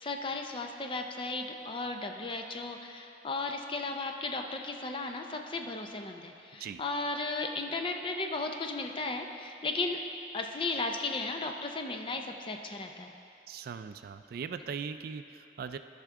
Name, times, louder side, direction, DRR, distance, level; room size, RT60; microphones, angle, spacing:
voice 1, 0.0-10.0 10.3-13.1, left 3 dB, 30° left, 4 dB, 0.5 m, -35 dB
voice 2, 13.5-15.8, right 6 dB, 55° right, 10 dB, 0.3 m, -40 dB
13.5 x 5.8 x 3.6 m, 2.9 s
head